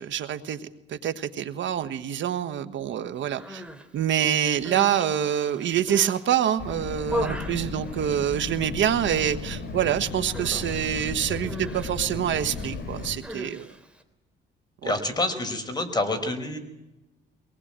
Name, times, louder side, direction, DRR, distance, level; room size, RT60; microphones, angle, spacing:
voice 1, 0.0-3.6 3.9-13.7 14.8-15.0, right 10 dB, 70° right, 10 dB, 1.4 m, -26 dB
Human voice, 3.2-3.9 4.4-6.2 6.7-8.7 8.9-9.4 9.6-9.9 10.3-14.0, equal, 5° right, 3.4 m, -38 dB
sound 1, 6.6-13.2, left 4 dB, 55° left, 6.8 m, -35 dB
voice 2, 14.8-16.6, left 2 dB, 20° left, 5 dB, 5.2 m, -28 dB
23.5 x 19.0 x 8.9 m, 0.97 s
cardioid pair, 90°, 20 cm